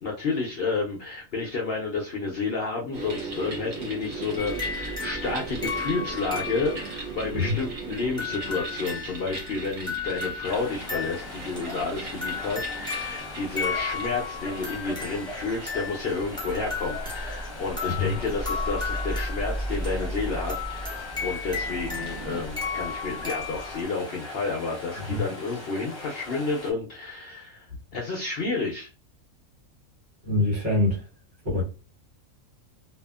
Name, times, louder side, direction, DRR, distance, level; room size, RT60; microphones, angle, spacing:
voice 1, 0.0-27.7 27.9-28.9, left 4 dB, 60° left, 0.6 m, -30 dB
sound 1, 2.9-22.4, right 3 dB, 80° right, 1.3 m, -39 dB
sound 2, 4.4-23.8, left 4 dB, 5° left, 0.6 m, -34 dB
sound 3, 10.4-26.7, left 2 dB, 35° left, 0.8 m, -41 dB
voice 2, 30.2-31.0 31.5-31.6, left 2 dB, 50° right, 1.5 m, -24 dB
2.7 x 2.4 x 2.3 m
omnidirectional pair, 1.4 m